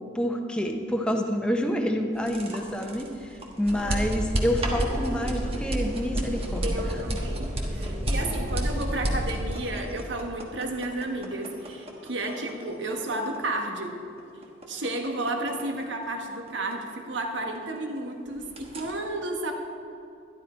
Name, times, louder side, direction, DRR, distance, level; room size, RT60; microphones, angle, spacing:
voice 1, 0.1-6.8 7.1-7.2, equal, 5° left, 3 dB, 0.8 m, -28 dB
sound 1, 2.1-18.0 18.3-18.9, equal, 30° right, 1.3 m, -31 dB
voice 2, 3.7-4.4 6.6-14.0 14.7-19.5, right 2 dB, 75° right, 3 dB, 1.4 m, -32 dB
12.0 x 11.5 x 4.4 m, 2.6 s
head